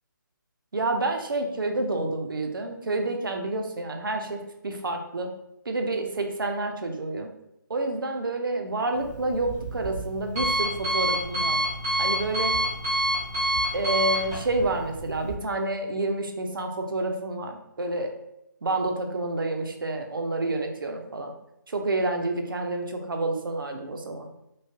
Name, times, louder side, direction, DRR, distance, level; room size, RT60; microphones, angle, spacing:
voice 1, 0.7-5.3 5.7-7.3 7.7-11.6 12.0-12.6 13.7-18.1 18.6-21.3 21.7-24.3, right 2 dB, 80° right, 3 dB, 0.6 m, -29 dB
Alarm, 8.9-15.3, right 1 dB, 5° right, 0.4 m, -28 dB
3.1 x 2.9 x 2.8 m, 0.87 s
hypercardioid pair, 175°, 11 cm